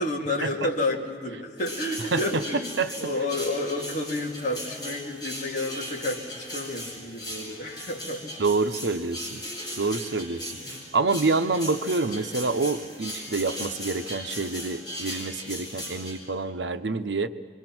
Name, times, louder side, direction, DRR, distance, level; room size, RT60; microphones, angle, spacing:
voice 1, 0.0-8.4 10.6-10.9, left 2 dB, 45° left, -1 dB, 2.7 m, -30 dB
sound 1, 1.6-16.2, equal, 25° left, 7.9 m, -38 dB
voice 2, 2.1-2.4 2.8-2.9 8.4-9.4 9.8-10.5 10.9-17.3, right 3 dB, 80° right, 9 dB, 0.8 m, -27 dB
26.0 x 23.5 x 6.1 m, 2.1 s
head